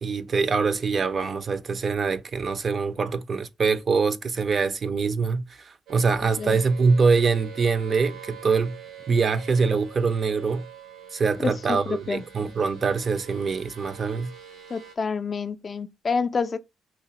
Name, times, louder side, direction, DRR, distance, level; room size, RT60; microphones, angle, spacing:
voice 1, 0.0-8.8 9.1-10.7 11.1-14.3, right 5 dB, 45° right, 0.4 m, -24 dB
sound 1, 5.9-15.0, right 8 dB, 80° right, 0.8 m, -45 dB
voice 2, 11.4-12.2 14.7-16.6, left 5 dB, 40° left, 0.3 m, -28 dB
2.8 x 2.4 x 2.8 m
cardioid pair, 90°, 0 cm